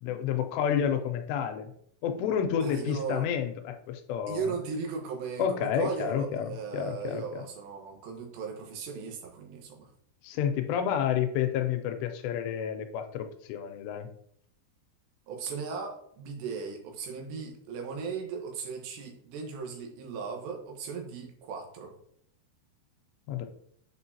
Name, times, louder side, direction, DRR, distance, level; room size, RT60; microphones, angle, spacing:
voice 1, 0.0-1.7 2.0-4.5 5.4-7.4 10.2-14.1 23.3-23.5, left 8 dB, 85° left, 6 dB, 2.8 m, -30 dB
voice 2, 2.6-3.3 4.3-9.9 15.3-21.9, right 5 dB, 85° right, 1 dB, 3.4 m, -37 dB
8.1 x 4.4 x 2.8 m, 0.67 s
omnidirectional pair, 4.9 m